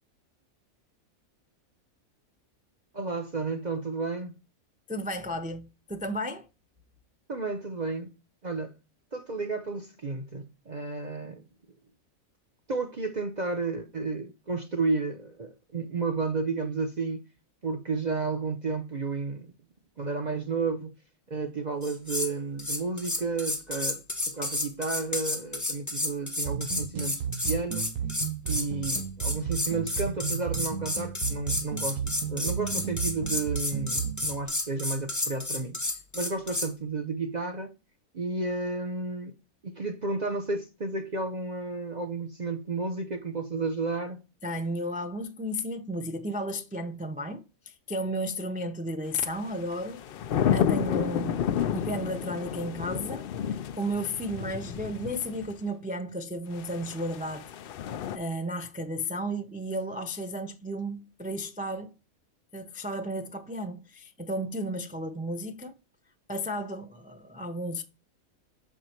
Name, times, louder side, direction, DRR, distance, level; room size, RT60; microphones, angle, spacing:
voice 1, 2.9-4.3 7.3-8.1 8.4-8.8 9.1-11.4 12.7-17.2 17.6-19.5 20.0-20.9 21.3-27.9 28.5-35.8 36.1-37.7 38.1-39.3 39.6-44.2, right 3 dB, 40° right, 0.8 m, -32 dB
voice 2, 4.9-6.5 44.4-50.0 50.5-51.4 51.7-57.5 58.1-61.9 62.5-65.7 66.3-67.8, equal, 10° right, 0.4 m, -33 dB
sound 1, 21.8-22.3 22.6-36.7, left 2 dB, 15° left, 1.0 m, -31 dB
sound 2, 26.5-34.5, right 8 dB, 75° right, 0.9 m, -34 dB
sound 3, 49.3-55.5 56.6-58.2, left 9 dB, 65° left, 0.5 m, -31 dB
6.6 x 4.7 x 4.3 m
omnidirectional pair, 1.5 m